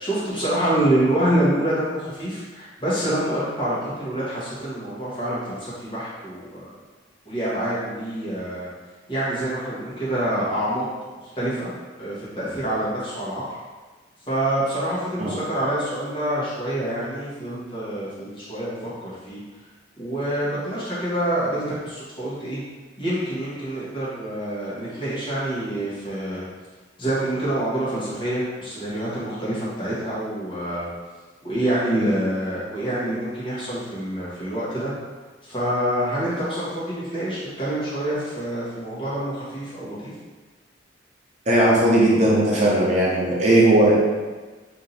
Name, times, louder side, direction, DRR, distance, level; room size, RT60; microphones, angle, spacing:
voice 1, 0.0-6.6 7.2-8.7 9.1-10.8 11.3-11.7 12.0-13.4 14.3-19.4 20.0-22.6 23.0-26.4 27.0-30.9 31.4-34.9 35.4-40.1, right 1 dB, 25° left, -9 dB, 1.4 m, -26 dB
voice 2, 41.5-43.9, right 1 dB, 40° right, -5 dB, 0.7 m, -17 dB
3.6 x 2.8 x 4.0 m, 1.3 s
head